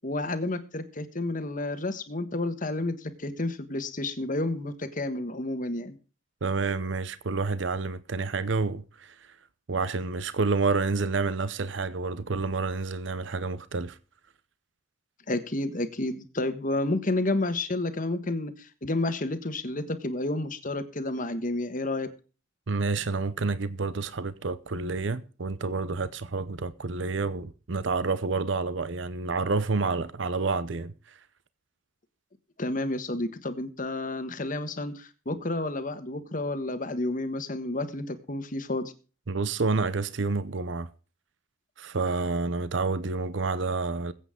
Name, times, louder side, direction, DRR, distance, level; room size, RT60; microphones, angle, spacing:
voice 1, 0.0-6.0 15.3-22.1 32.6-38.9, left 2 dB, 40° left, 1.4 m, -30 dB
voice 2, 6.4-9.3 9.7-14.0 22.7-31.2 39.3-40.9 41.8-44.1, right 3 dB, 65° right, 0.7 m, -29 dB
21.5 x 8.3 x 3.7 m
head